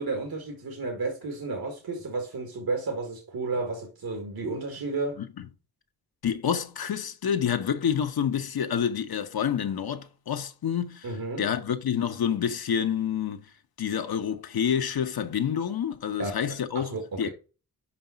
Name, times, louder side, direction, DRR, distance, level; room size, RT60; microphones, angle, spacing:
voice 1, 0.0-5.2 11.0-11.5 16.2-16.3 16.7-17.3, right 3 dB, 70° right, 2.0 m, -32 dB
voice 2, 6.2-11.1 11.4-13.4 13.8-17.3, left 8 dB, 70° left, 1.0 m, -28 dB
5.5 x 5.4 x 5.7 m
cardioid pair, 50°, 38 cm